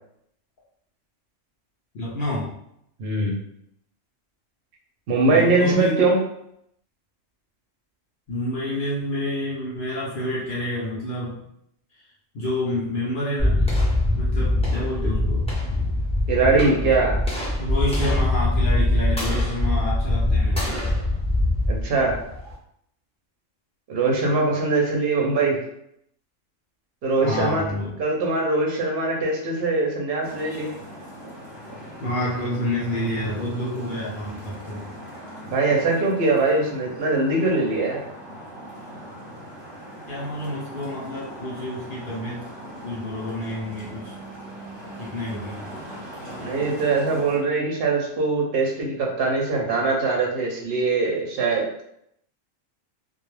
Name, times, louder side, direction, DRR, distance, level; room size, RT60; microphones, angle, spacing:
voice 1, 1.9-2.5 5.3-6.0 8.3-11.4 12.3-13.6 14.2-15.4 17.6-20.8 27.2-27.9 32.0-34.9 40.1-42.4 42.8-44.2 45.0-45.6, left 1 dB, 55° left, -6 dB, 0.6 m, -28 dB
voice 2, 3.0-3.4 5.1-6.2 16.3-17.2 21.7-22.1 23.9-25.6 27.0-27.6 28.0-30.7 35.5-38.0 46.4-51.6, right 3 dB, 60° right, -1 dB, 0.7 m, -22 dB
sound 1, 13.4-22.5, left 1 dB, 10° left, 0.5 m, -23 dB
Traffic noise roadway noise, 30.2-47.4, right 1 dB, 25° right, 0.7 m, -40 dB
2.2 x 2.0 x 3.1 m, 0.75 s
omnidirectional pair, 1.4 m